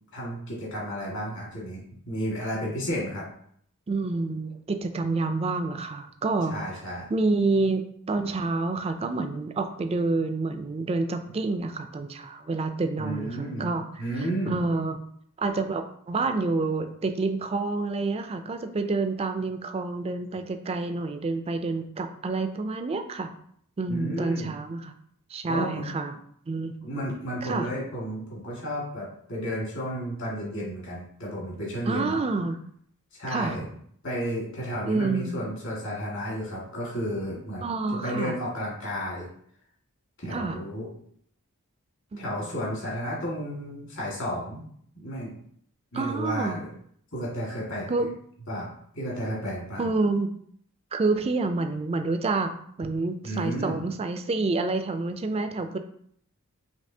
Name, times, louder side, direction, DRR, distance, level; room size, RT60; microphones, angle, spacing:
voice 1, 0.1-3.2 6.5-7.1 13.0-13.7 14.0-14.6 23.9-24.5 25.5-25.8 26.8-32.2 33.1-33.7 34.0-37.7 38.0-39.3 40.2-40.9 42.2-44.6 45.0-45.3 45.9-46.7 47.1-47.9 48.5-48.7 48.9-49.9 53.2-53.8, equal, 60° left, -5 dB, 1.8 m, -32 dB
voice 2, 3.9-6.8 7.1-7.8 8.1-15.0 15.4-23.3 23.8-24.9 25.3-26.1 26.5-26.7 27.4-27.7 31.8-32.6 33.3-33.6 34.8-35.4 37.6-38.4 40.3-40.6 42.1-42.3 45.9-46.6 47.9-48.1 49.8-50.3 50.9-52.5 52.8-55.8, right 3 dB, 25° right, 8 dB, 0.3 m, -28 dB
5.2 x 3.1 x 2.7 m, 0.65 s
head